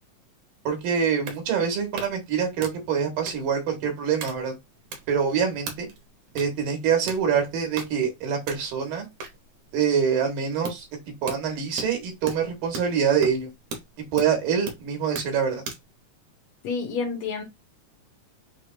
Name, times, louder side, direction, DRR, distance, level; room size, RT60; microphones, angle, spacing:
voice 1, 0.6-4.5 5.1-5.9 6.3-9.1 9.7-10.8 11.2-13.5 14.1-15.6, right 7 dB, 90° right, 2.9 m, -25 dB
sound 1, 0.8-15.9, right 4 dB, 65° right, 2.2 m, -40 dB
voice 2, 16.6-17.4, left 5 dB, 70° left, 1.7 m, -29 dB
6.2 x 3.0 x 2.4 m
omnidirectional pair, 3.8 m